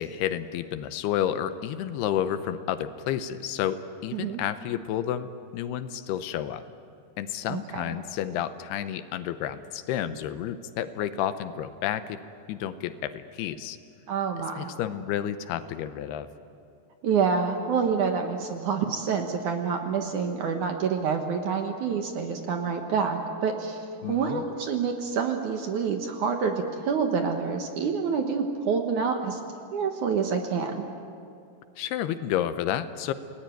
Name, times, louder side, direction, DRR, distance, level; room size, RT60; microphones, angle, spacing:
voice 1, 0.0-6.6 7.2-12.2 12.5-13.8 14.6-16.3 24.0-24.4 31.8-33.1, left 10 dB, 80° left, 11 dB, 2.8 m, -30 dB
voice 2, 7.5-7.9 14.1-14.7 17.0-23.8 24.1-29.4 29.7-30.9, right 6 dB, 60° right, 4 dB, 2.3 m, -27 dB
29.0 x 19.0 x 9.2 m, 2.4 s
omnidirectional pair, 4.8 m